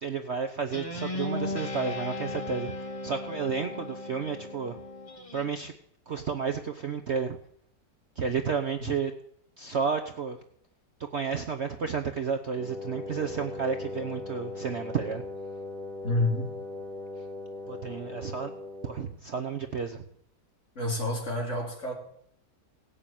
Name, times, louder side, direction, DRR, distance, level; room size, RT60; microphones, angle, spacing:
voice 1, 0.0-4.8 5.3-5.7 6.1-7.4 8.2-9.1 9.6-10.4 11.1-15.2 17.7-18.5 18.8-20.0, right 6 dB, 50° right, 1.0 m, -31 dB
Guitar, 0.7-5.5, left 2 dB, 20° left, 1.3 m, -36 dB
Wind instrument woodwind instrument, 12.5-19.1, left 2 dB, 25° right, 4.5 m, -39 dB
voice 2, 16.0-16.5 20.8-21.9, left 1 dB, 40° left, 3.8 m, -28 dB
17.5 x 6.9 x 8.9 m
omnidirectional pair, 1.8 m